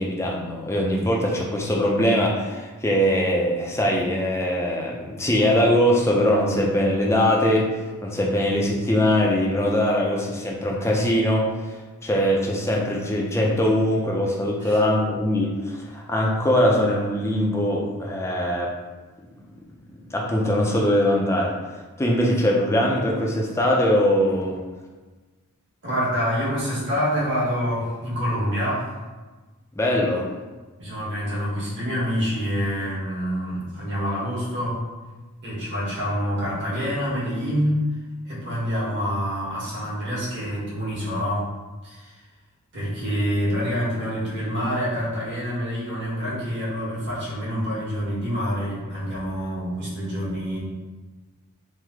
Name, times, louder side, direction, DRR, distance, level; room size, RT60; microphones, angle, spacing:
voice 1, 0.0-7.6 8.0-18.7 20.1-21.5 22.0-24.6 29.8-30.3, equal, 10° left, -2 dB, 0.4 m, -22 dB
voice 2, 25.8-28.9 30.8-34.8 35.4-37.8 38.2-41.5 41.8-42.1 42.7-50.6, equal, 55° right, -7 dB, 1.1 m, -26 dB
3.1 x 2.0 x 3.5 m, 1.3 s
head